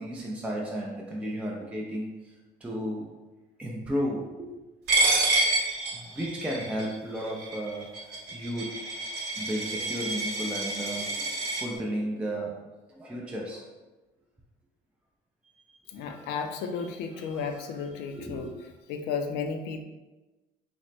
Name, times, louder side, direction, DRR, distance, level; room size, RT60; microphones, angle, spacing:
voice 1, 0.0-2.3 2.6-3.2 3.6-4.5 5.9-7.9 8.3-8.8 9.4-12.6 12.9-13.7 15.9-16.7 17.1-17.7 18.1-18.5, equal, 5° right, -3 dB, 0.4 m, -34 dB
Coin (dropping), 4.9-11.6, right 2 dB, 80° right, 0.9 m, -28 dB
voice 2, 15.9-18.5 18.9-19.8, left 5 dB, 85° left, 6 dB, 0.4 m, -33 dB
3.0 x 2.1 x 4.1 m, 1.1 s
cardioid pair, 110°, 17 cm